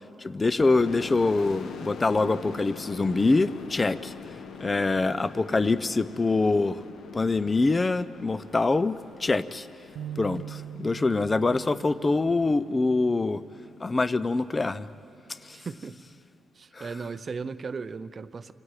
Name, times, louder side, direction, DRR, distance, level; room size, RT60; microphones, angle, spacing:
voice 1, 0.2-4.1 4.6-6.8 7.1-9.7 10.2-13.4 13.8-14.9 15.4-15.6 16.7-16.9, left 3 dB, 20° left, 15 dB, 0.4 m, -25 dB
sound 1, 0.6-14.0, left 6 dB, 70° left, 1.3 m, -44 dB
sound 2, 10.0-14.2 14.7-14.9 15.8-16.2, right 10 dB, 80° right, 0.7 m, -43 dB
voice 2, 15.5-16.0 16.6-18.5, right 5 dB, 30° right, 13 dB, 0.6 m, -36 dB
29.5 x 25.5 x 4.8 m, 2.6 s
wide cardioid pair, 160°, 0 cm